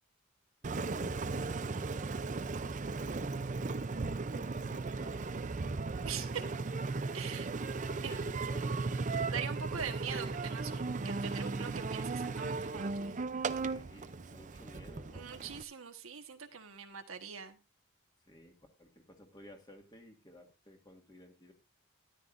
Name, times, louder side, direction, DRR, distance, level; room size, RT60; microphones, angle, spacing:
Engine, 0.6-15.6, right 3 dB, 35° right, 0.5 m, -36 dB
voice 1, 2.3-7.6 7.9-9.0 13.5-15.4 18.3-21.5, left 1 dB, 20° left, 3 dB, 1.9 m, -57 dB
voice 2, 6.0-6.4 7.1-7.5 8.0-8.2 9.3-13.2 15.1-17.6, right 7 dB, 80° right, 6 dB, 1.4 m, -42 dB
13.5 x 11.5 x 2.6 m, 0.27 s
head